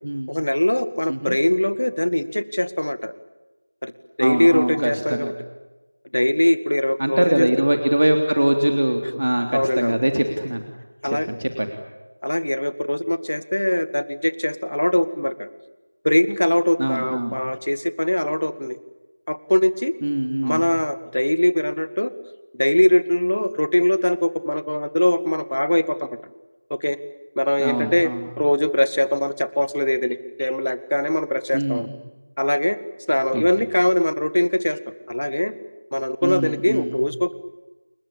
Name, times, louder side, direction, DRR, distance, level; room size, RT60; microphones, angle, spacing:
voice 1, 0.3-3.1 3.8-3.9 4.2-5.3 6.1-7.5 9.5-10.0 11.0-11.3 12.2-15.5 16.0-18.8 19.3-19.9 20.4-22.1 22.5-26.1 26.7-27.0 27.4-28.1 28.4-31.9 32.4-32.8 33.1-34.8 35.1-35.5 35.9-37.3, left 1 dB, 70° left, 13 dB, 2.0 m, -21 dB
voice 2, 4.2-5.3 7.0-10.6 11.3-11.7 16.8-17.3 20.0-20.6 27.6-28.2 31.5-31.9 33.3-33.4 36.2-36.9, right 1 dB, 55° right, 5 dB, 3.4 m, -22 dB
30.0 x 21.5 x 8.7 m, 1.1 s
figure-of-eight pair, 175°, 0 cm